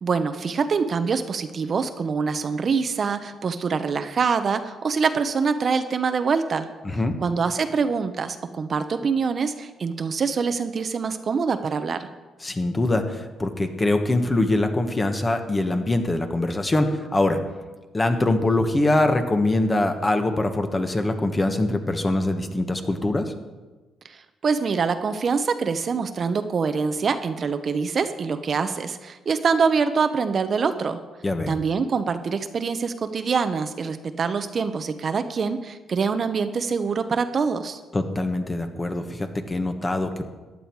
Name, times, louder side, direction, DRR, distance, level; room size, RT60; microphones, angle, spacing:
voice 1, 0.0-6.7 7.2-12.1 24.0-31.0 31.5-37.8, right 5 dB, 45° right, 9 dB, 0.8 m, -25 dB
voice 2, 12.4-17.4 17.9-23.3 31.2-31.5 37.9-40.3, left 2 dB, 20° left, 6 dB, 1.4 m, -23 dB
14.5 x 10.5 x 4.7 m, 1.2 s
cardioid pair, 90°, 0 cm